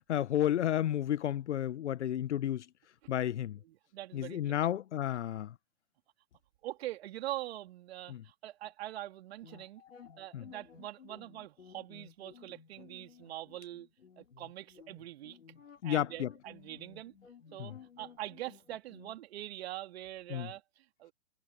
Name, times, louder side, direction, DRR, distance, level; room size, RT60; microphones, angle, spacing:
voice 1, 0.1-2.6 3.1-3.6 4.1-5.5 8.1-8.2 10.3-10.4 15.8-16.3 17.6-17.8 20.3-20.5, left 11 dB, 60° left, 1.0 m, -32 dB
voice 2, 3.6-4.5 6.6-9.8 10.2-13.9 14.2-15.4 15.8-17.1 17.5-21.1, right 14 dB, 50° right, 3.2 m, -43 dB
sound 1, 9.4-19.2, left 7 dB, 75° left, 2.7 m, -56 dB
figure-of-eight pair, 115°, 39 cm